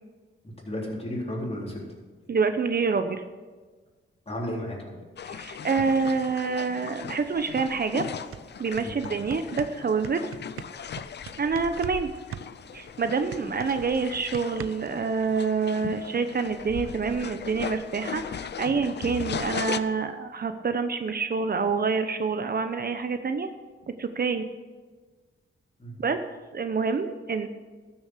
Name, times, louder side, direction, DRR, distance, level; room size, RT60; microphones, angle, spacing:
voice 1, 0.4-1.8 4.3-5.0 8.8-9.0 25.8-26.0, equal, 30° left, -3 dB, 3.8 m, -33 dB
voice 2, 2.3-3.2 5.3-8.1 8.6-10.3 11.4-12.1 12.7-23.5 24.0-24.4 26.0-26.2 26.5-27.5, right 5 dB, 45° right, 9 dB, 0.7 m, -27 dB
sound 1, 5.2-19.8, left 8 dB, 55° left, 0.6 m, -38 dB
sound 2, 7.8-7.9 8.2-12.0 12.3-15.0, right 9 dB, 85° right, 0.6 m, -40 dB
13.0 x 7.2 x 6.6 m, 1.4 s
cardioid pair, 80°, 21 cm